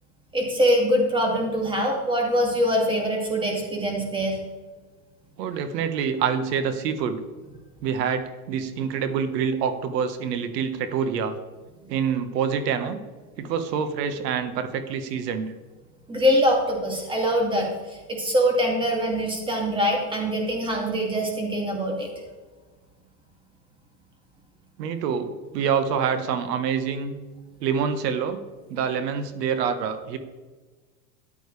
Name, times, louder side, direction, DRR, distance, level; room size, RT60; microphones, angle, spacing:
voice 1, 0.3-4.4 11.8-11.9 16.1-22.1, equal, 10° right, 0 dB, 2.4 m, -23 dB
voice 2, 5.4-7.2 7.8-11.4 11.9-13.0 13.4-15.5 24.8-27.1 27.6-28.4 28.7-30.2, right 7 dB, 80° right, 10 dB, 1.5 m, -26 dB
13.5 x 9.1 x 3.3 m, 1.3 s
supercardioid pair, 150°, 48 cm